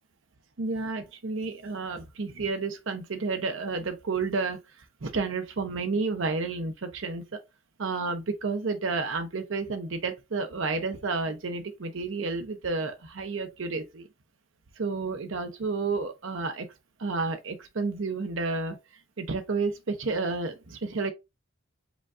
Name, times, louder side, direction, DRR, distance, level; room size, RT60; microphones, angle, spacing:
voice 1, 0.6-4.6 5.0-7.4 7.8-14.1 14.8-16.7 17.0-18.8 19.2-21.1, right 3 dB, 65° right, 0.6 m, -31 dB
5.0 x 2.4 x 3.5 m
head